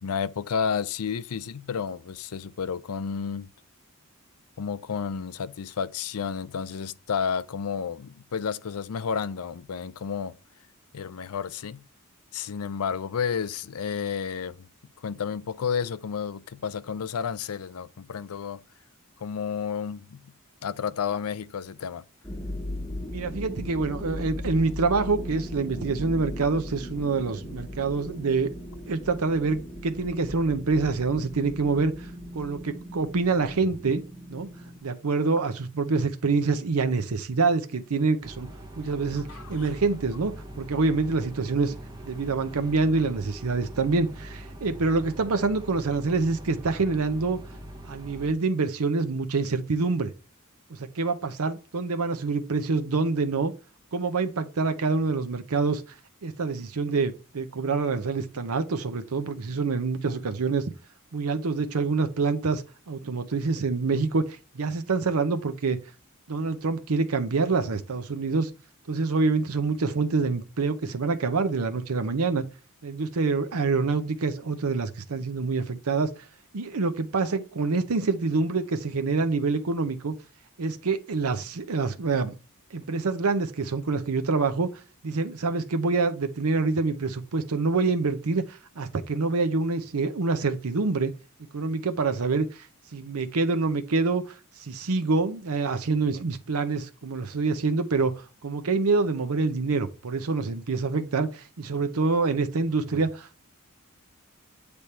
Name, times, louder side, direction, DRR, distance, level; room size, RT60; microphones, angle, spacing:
voice 1, 0.0-3.5 4.6-10.4 10.9-11.8 12.3-14.7 15.0-18.6 19.2-20.3 20.6-22.0 39.3-39.7 40.1-40.2, left 6 dB, 80° left, 0.5 m, -31 dB
sound 1, 22.2-34.8, left 1 dB, 15° left, 0.9 m, -38 dB
voice 2, 23.1-28.5 28.9-34.0 34.3-34.5 34.8-38.5 38.8-41.7 42.0-47.4 47.9-50.1 50.7-53.5 53.9-55.8 56.2-60.6 61.1-65.8 66.3-68.5 68.9-72.4 72.8-76.1 76.5-80.1 80.6-82.3 82.7-84.7 85.0-91.1 91.5-92.7 92.9-103.4, right 4 dB, 80° right, 0.7 m, -26 dB
sound 2, 38.2-48.3, right 1 dB, 20° right, 0.9 m, -42 dB
8.2 x 3.5 x 4.2 m
head